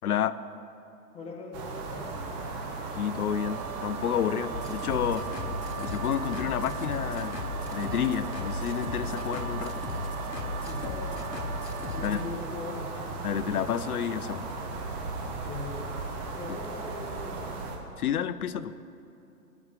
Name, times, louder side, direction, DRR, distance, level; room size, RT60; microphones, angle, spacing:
voice 1, 0.0-0.4 3.0-5.3 5.7-7.4 7.7-9.8 12.0-12.2 13.2-14.5 18.0-18.7, left 9 dB, 65° left, 15 dB, 0.6 m, -30 dB
voice 2, 1.1-2.1 10.6-11.5 11.9-12.9 15.4-15.8 16.3-17.5, left 4 dB, 10° left, -1 dB, 1.2 m, -40 dB
sound 1, 1.5-17.8, right 3 dB, 25° right, 1.1 m, -37 dB
Wind instrument woodwind instrument, 3.3-12.4, right 13 dB, 60° right, 0.5 m, -43 dB
sound 2, 4.5-12.2, left 2 dB, 90° left, 1.1 m, -37 dB
17.0 x 5.9 x 3.8 m, 2.8 s
figure-of-eight pair, 125°, 48 cm